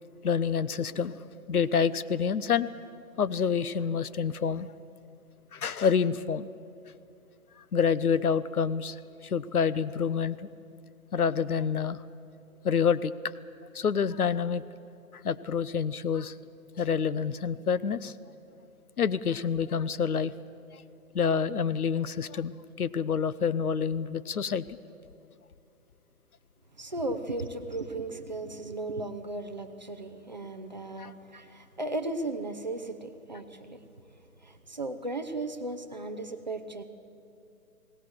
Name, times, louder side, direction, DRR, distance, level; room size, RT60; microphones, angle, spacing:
voice 1, 0.2-2.7 3.2-4.7 5.5-6.5 7.7-9.0 9.2-10.5 11.1-12.0 12.6-13.1 13.7-14.6 15.2-16.3 16.8-18.1 19.0-20.3 21.1-24.6 31.0-31.1, left 6 dB, 75° left, 16 dB, 0.9 m, -27 dB
voice 2, 26.8-33.8 34.4-36.8, right 2 dB, 30° right, 7 dB, 0.7 m, -36 dB
20.5 x 18.0 x 7.8 m, 2.6 s
hypercardioid pair, 170°, 44 cm